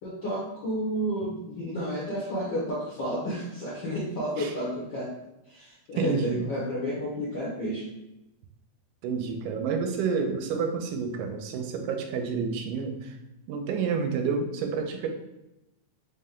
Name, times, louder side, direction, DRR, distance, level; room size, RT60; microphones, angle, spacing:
voice 1, 0.0-5.1 5.5-7.9, equal, 70° left, -7 dB, 1.1 m, -31 dB
voice 2, 6.0-6.4 9.0-13.2 13.5-15.1, right 5 dB, 90° right, 5 dB, 2.1 m, -29 dB
5.2 x 2.2 x 3.6 m, 0.91 s
omnidirectional pair, 3.5 m